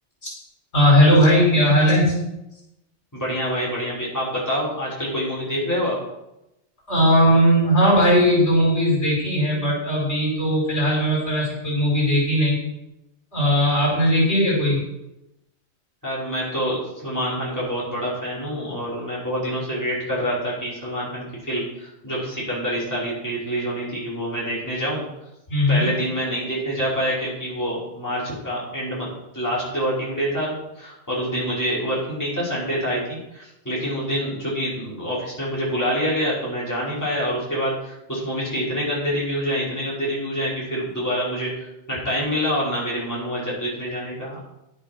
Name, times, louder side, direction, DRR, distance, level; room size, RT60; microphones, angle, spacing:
voice 1, 0.7-2.1 6.9-12.6 13.3-14.8 25.5-25.9, equal, 70° left, -3 dB, 5.8 m, -18 dB
voice 2, 3.1-6.0 16.0-25.0 25.7-29.1 29.3-44.4, equal, 15° left, -8 dB, 5.9 m, -26 dB
11.5 x 8.3 x 6.3 m, 0.89 s
omnidirectional pair, 1.2 m